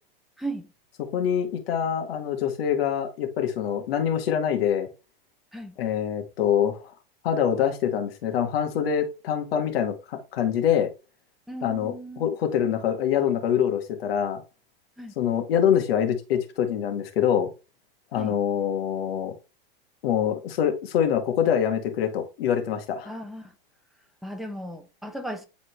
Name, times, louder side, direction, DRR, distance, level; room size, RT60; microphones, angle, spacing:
voice 1, 1.1-4.9 5.8-6.9 7.2-10.9 11.6-14.4 15.2-17.5 18.1-19.3 20.0-23.1, left 9 dB, 80° left, 2.0 m, -25 dB
voice 2, 11.5-12.3 15.0-15.1 18.1-18.4 23.0-23.5 24.2-25.5, right 1 dB, ahead, 1.3 m, -36 dB
11.5 x 4.2 x 3.2 m
supercardioid pair, 135°, 29 cm